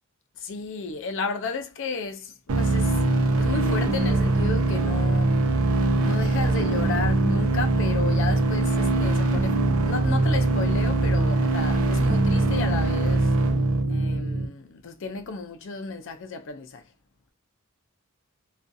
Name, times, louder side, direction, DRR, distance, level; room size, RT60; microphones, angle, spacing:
voice 1, 0.4-3.0 3.4-5.4 6.0-9.6 9.8-13.3 13.9-16.8, left 4 dB, 60° left, 0.5 m, -33 dB
sound 1, 2.5-14.5, right 2 dB, 75° right, 0.5 m, -22 dB
2.4 x 2.3 x 2.6 m
head